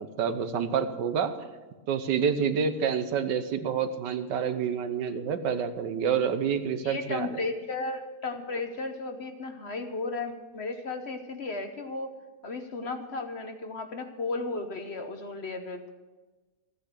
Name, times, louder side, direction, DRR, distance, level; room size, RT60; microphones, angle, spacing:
voice 1, 0.0-1.3 1.9-7.4, right 7 dB, 85° right, 10 dB, 1.6 m, -28 dB
voice 2, 6.8-12.1 12.4-15.9, left 3 dB, 45° left, 6 dB, 1.0 m, -34 dB
14.0 x 9.1 x 6.7 m, 1.2 s
omnidirectional pair, 1.8 m